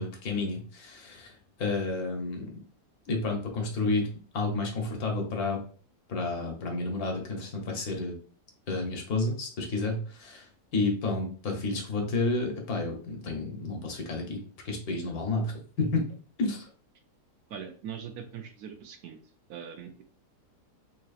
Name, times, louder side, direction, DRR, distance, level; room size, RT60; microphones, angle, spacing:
voice 1, 0.0-1.3 1.6-2.5 3.1-4.1 4.3-5.6 6.1-8.2 8.7-10.5 10.7-16.0 16.4-16.7, left 3 dB, 70° left, 1 dB, 1.2 m, -30 dB
voice 2, 17.5-19.2 19.5-20.0, right 8 dB, 75° right, 6 dB, 1.0 m, -41 dB
4.0 x 2.9 x 2.4 m, 0.42 s
omnidirectional pair, 1.8 m